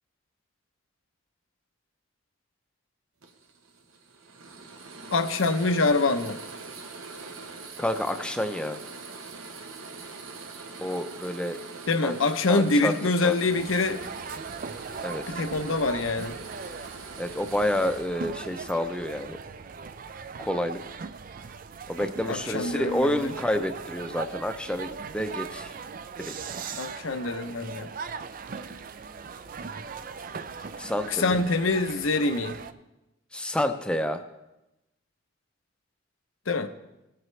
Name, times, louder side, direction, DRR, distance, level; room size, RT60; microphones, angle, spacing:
sound 1, 3.2-18.7, right 4 dB, 80° right, 1.0 m, -43 dB
voice 1, 5.1-6.4 11.9-14.0 15.3-16.3 22.3-23.3 26.7-27.9 31.1-32.6 36.5-36.7, left 3 dB, 75° left, 9 dB, 0.7 m, -25 dB
voice 2, 7.8-8.8 10.8-11.6 12.0-12.2 12.5-12.9 13.2-13.4 15.0-15.4 17.2-19.4 20.4-20.8 21.9-25.7 26.2-26.3 30.8-31.4 33.3-34.2, left 1 dB, 5° left, 7 dB, 0.5 m, -29 dB
sound 2, 13.5-32.7, right 5 dB, 40° right, 0.4 m, -39 dB
18.0 x 7.7 x 3.2 m, 0.96 s
head